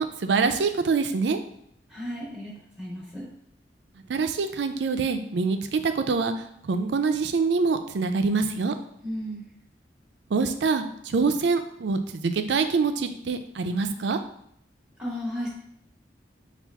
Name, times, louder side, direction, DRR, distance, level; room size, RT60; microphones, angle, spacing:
voice 1, 0.0-1.4 4.1-6.3 6.6-8.7 10.3-14.2, right 4 dB, 80° right, 8 dB, 0.4 m, -25 dB
voice 2, 1.9-3.3 9.0-9.5 15.0-15.5, equal, 5° right, -6 dB, 1.0 m, -34 dB
5.7 x 2.4 x 3.4 m, 0.71 s
head